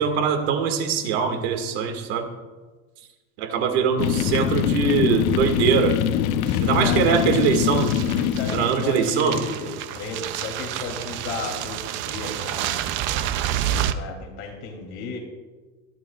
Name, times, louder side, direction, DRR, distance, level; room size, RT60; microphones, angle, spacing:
voice 1, 0.0-2.3 3.4-6.0 6.6-7.9 8.5-9.4 10.7-10.8, right 6 dB, 75° right, 5 dB, 2.0 m, -22 dB
sound 1, 4.0-9.0, left 10 dB, 60° left, 0.8 m, -23 dB
sound 2, 6.5-13.9, right 11 dB, 35° right, 0.5 m, -30 dB
voice 2, 6.8-7.3 8.3-12.9 13.9-15.2, left 4 dB, 45° left, 1 dB, 2.9 m, -33 dB
21.0 x 13.0 x 2.4 m, 1.3 s
cardioid pair, 175°, 33 cm